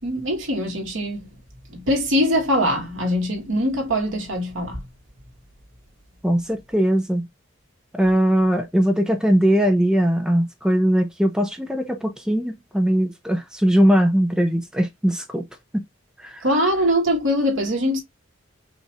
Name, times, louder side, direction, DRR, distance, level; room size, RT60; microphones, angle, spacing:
voice 1, 0.0-1.3 1.7-4.9 16.4-18.0, equal, 85° right, 1.9 m, -22 dB
voice 2, 6.2-7.3 7.9-15.5 15.7-15.8 16.2-16.4, equal, 5° right, 0.6 m, -20 dB
5.5 x 2.6 x 3.0 m
head